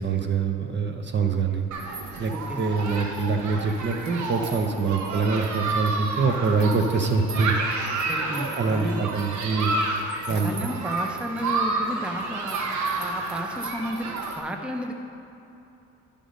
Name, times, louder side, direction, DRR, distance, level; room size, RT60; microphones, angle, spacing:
voice 1, 0.0-1.7 2.2-2.3 2.6-7.6 8.5-9.7 10.3-10.7, right 4 dB, 35° right, 5 dB, 0.8 m, -24 dB
Human group actions, 1.7-14.4, right 3 dB, 70° right, 1.2 m, -30 dB
voice 2, 2.3-2.7 8.1-9.1 10.3-12.6 13.0-14.9, equal, 5° right, 3 dB, 0.7 m, -33 dB
11.5 x 5.2 x 5.1 m, 3.0 s
cardioid pair, 90°, 30 cm